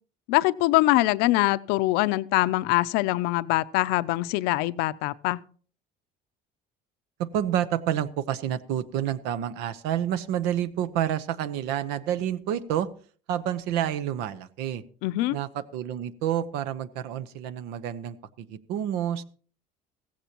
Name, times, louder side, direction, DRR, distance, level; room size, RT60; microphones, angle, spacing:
voice 1, 0.3-5.4 15.0-15.4, left 18 dB, 80° left, 16 dB, 0.6 m, -23 dB
voice 2, 7.2-12.9 13.3-14.8 15.3-19.2, right 10 dB, 80° right, 15 dB, 0.9 m, -29 dB
16.0 x 15.0 x 3.0 m, 0.43 s
cardioid pair, 140°, 17 cm